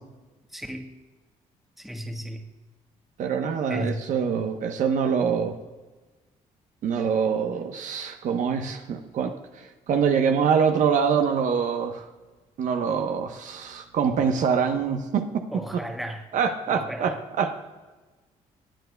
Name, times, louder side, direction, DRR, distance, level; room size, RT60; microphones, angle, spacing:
voice 1, 0.5-0.9 1.8-2.4 3.7-4.0 15.5-16.2 16.7-17.1, equal, ahead, 4 dB, 1.3 m, -34 dB
voice 2, 3.2-5.6 6.8-12.1 12.6-15.4 15.7-15.8 16.3-17.6, right 6 dB, 70° right, 5 dB, 1.0 m, -25 dB
18.0 x 9.3 x 2.3 m, 1.2 s
cardioid pair, 90°, 14 cm